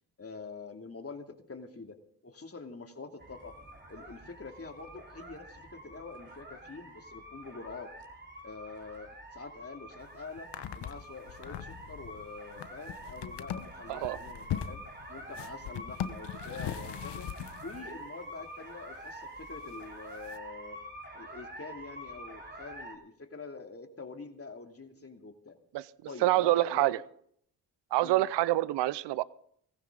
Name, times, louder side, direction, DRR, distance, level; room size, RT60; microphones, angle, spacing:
voice 1, 0.2-3.5 3.9-7.9 8.4-14.8 15.1-17.3 17.6-20.8 21.1-25.6 26.1-26.9 28.0-28.2, left 4 dB, 35° left, 4 dB, 2.7 m, -46 dB
sound 1, 3.2-22.9, right 1 dB, 25° right, 4.2 m, -47 dB
sound 2, 10.0-10.1 10.4-17.9 18.9-19.0 19.6-19.8 20.2-20.4, left 10 dB, 80° left, 1.0 m, -40 dB
voice 2, 26.2-27.0 27.9-29.2, right 16 dB, 85° right, 20 dB, 0.6 m, -26 dB
19.0 x 15.5 x 3.9 m, 0.65 s
supercardioid pair, 50°, 41 cm